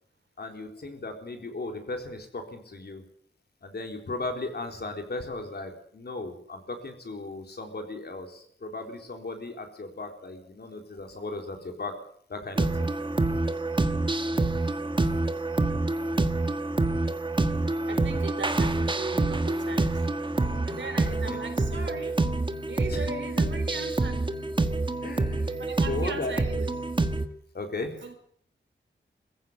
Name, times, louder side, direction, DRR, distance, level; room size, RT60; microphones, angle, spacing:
voice 1, 0.4-3.0 3.6-11.9 12.3-12.9 21.2-21.4 22.9-23.1 25.0-26.3 27.5-28.0, left 2 dB, 55° left, 4 dB, 4.1 m, -36 dB
sound 1, 12.6-27.3, right 2 dB, 25° right, 1.5 m, -27 dB
voice 2, 17.9-20.0 20.6-22.2 22.7-24.2 25.6-26.7 28.0-28.1, right 3 dB, 70° right, 7 dB, 4.5 m, -38 dB
22.5 x 15.0 x 8.0 m, 0.64 s
wide cardioid pair, 140°, 20 cm